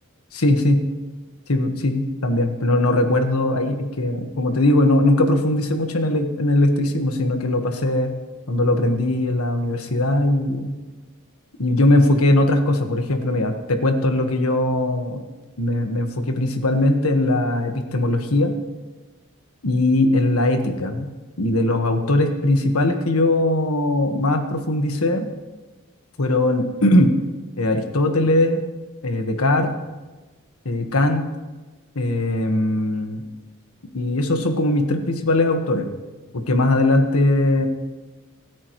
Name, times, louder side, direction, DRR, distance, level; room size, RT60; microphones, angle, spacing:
voice 1, 0.3-0.8 1.5-8.1 8.5-10.7 11.6-15.2 15.6-18.5 19.6-21.1 21.4-25.3 26.2-27.1 27.6-28.6 29.0-29.7 30.6-31.2 31.9-33.2 33.9-35.9 36.5-37.7, left 1 dB, 90° left, 5 dB, 1.5 m, -20 dB
28.5 x 9.6 x 3.2 m, 1.2 s
head